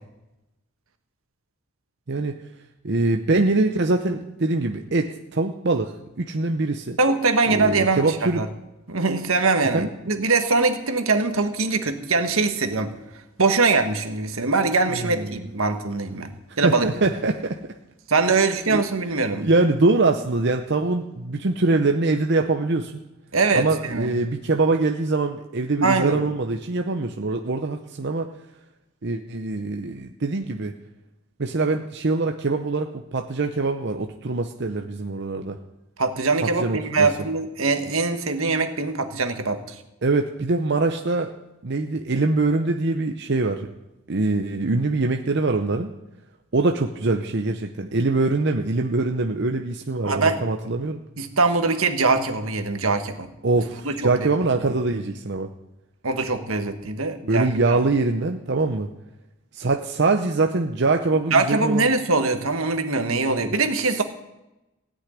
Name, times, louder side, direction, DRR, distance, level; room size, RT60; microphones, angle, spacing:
voice 1, 2.8-7.0 7.5-8.4 9.7-9.9 14.9-15.5 16.6-17.6 18.2-18.9 19.4-22.9 23.5-28.3 29.0-30.7 31.4-35.6 36.4-37.1 40.0-41.3 41.6-43.7 44.1-45.9 46.5-51.0 53.4-55.5 57.2-58.9 59.5-61.9, right 3 dB, 55° right, 4 dB, 0.7 m, -23 dB
voice 2, 7.0-8.5 8.9-12.9 13.4-16.3 16.6-16.9 18.1-19.5 23.3-24.1 25.8-26.2 36.0-39.7 50.0-50.4 51.2-53.3 53.8-54.1 56.0-57.8 61.3-64.0, right 3 dB, 75° right, 7 dB, 1.5 m, -22 dB
16.5 x 6.4 x 9.9 m, 0.98 s
head